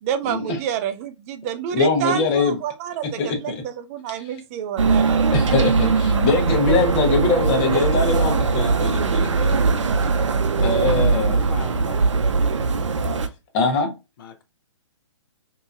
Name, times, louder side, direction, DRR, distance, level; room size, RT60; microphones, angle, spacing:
voice 1, 0.0-5.4, right 9 dB, 30° right, 0.4 m, -28 dB
voice 2, 1.7-2.6 3.2-3.6 5.3-9.2 10.6-11.4 13.5-13.9, left 4 dB, 30° left, 1.0 m, -22 dB
sound 1, 4.8-13.3, right 4 dB, 80° right, 0.5 m, -20 dB
voice 3, 10.6-11.1 11.3-12.1 14.2-14.4, left 7 dB, 50° left, 0.6 m, -38 dB
3.8 x 2.8 x 2.4 m
hypercardioid pair, 135°, 15 cm